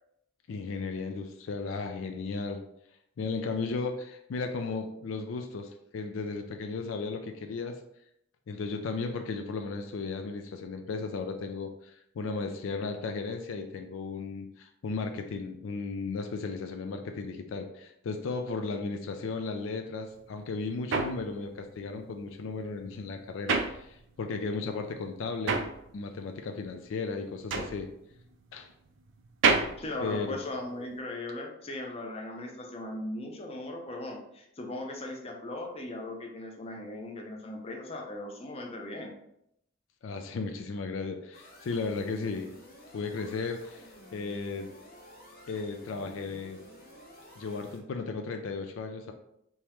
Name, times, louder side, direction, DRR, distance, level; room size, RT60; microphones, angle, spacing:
voice 1, 0.5-2.6 3.2-7.8 8.5-25.6 25.9-27.9 28.5-28.7 30.0-30.4 40.0-42.5 42.9-44.7 45.5-46.6 47.4-49.1, left 4 dB, 75° left, 6 dB, 0.4 m, -35 dB
sound 1, 20.1-24.4 24.7-31.0, right 4 dB, 70° right, 0.4 m, -31 dB
voice 2, 29.8-39.1, left 1 dB, 30° left, 2 dB, 0.6 m, -38 dB
sound 2, 41.3-47.8, equal, 50° left, 0.9 m, -52 dB
3.5 x 2.8 x 3.0 m, 0.76 s
head